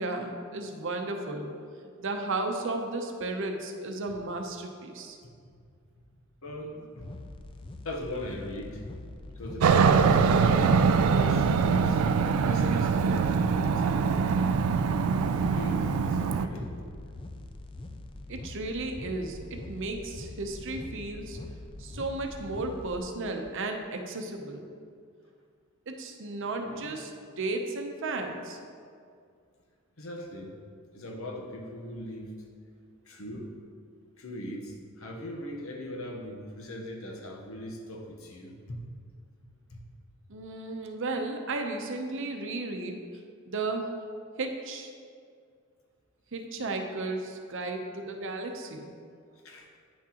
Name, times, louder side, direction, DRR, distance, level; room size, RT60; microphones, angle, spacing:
voice 1, 0.0-1.5 2.0-5.2 18.3-21.4 21.8-24.7 25.9-27.1 27.4-28.6 40.3-43.0 43.5-43.9 44.4-44.9 46.3-48.9, right 2 dB, 65° right, 4 dB, 0.7 m, -34 dB
voice 2, 6.1-7.1 7.8-8.8 9.3-12.0 12.5-14.3 15.2-16.9 17.2-17.6 26.6-26.9 30.0-30.6 30.9-32.4 33.0-33.5 34.2-38.8 39.7-39.8 49.4-49.7, left 1 dB, 75° left, 0 dB, 1.0 m, -40 dB
sound 1, 7.0-23.0, left 2 dB, 25° left, 0.4 m, -43 dB
Aircraft, 9.6-16.5, right 5 dB, 85° right, 0.3 m, -23 dB
9.3 x 6.1 x 2.9 m, 2.2 s
head